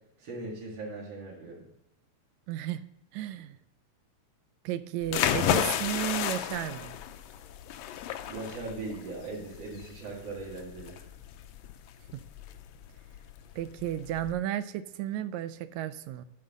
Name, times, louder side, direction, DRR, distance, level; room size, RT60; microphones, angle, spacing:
voice 1, 0.2-1.7 8.2-11.0, right 3 dB, 55° right, -6 dB, 2.8 m, -39 dB
voice 2, 2.5-2.8 3.1-3.6 4.7-6.9 12.1-12.2 13.6-16.3, right 12 dB, 80° right, 13 dB, 1.7 m, -33 dB
sound 1, 5.0-14.3, left 10 dB, 75° left, 1.7 m, -33 dB
9.4 x 4.7 x 7.3 m, 0.85 s
omnidirectional pair, 3.4 m